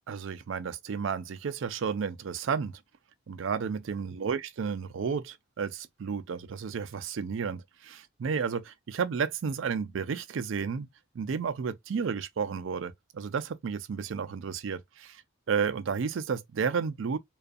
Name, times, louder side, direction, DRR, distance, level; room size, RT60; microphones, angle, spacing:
voice 1, 0.1-2.8 3.3-10.9 11.1-15.2 15.5-17.2, right 6 dB, 70° right, 0.4 m, -32 dB
2.4 x 2.4 x 2.4 m
head